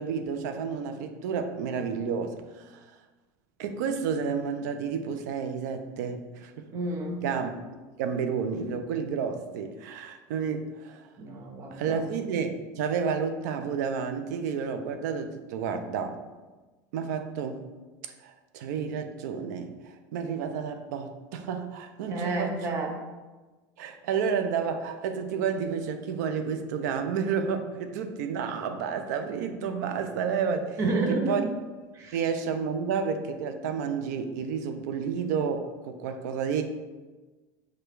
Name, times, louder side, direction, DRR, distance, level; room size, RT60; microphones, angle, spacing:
voice 1, 0.0-2.8 3.6-6.7 7.2-7.5 8.0-11.1 11.7-16.2 16.9-17.6 18.2-22.6 23.8-30.8 31.1-31.4 32.1-36.6, right 6 dB, 90° right, 8 dB, 0.5 m, -31 dB
voice 2, 6.7-7.2 11.2-12.0 22.1-22.9 30.8-31.5 31.9-32.2, right 2 dB, 30° right, 3 dB, 0.6 m, -30 dB
4.9 x 2.3 x 4.6 m, 1.2 s
cardioid pair, 170°, 9 cm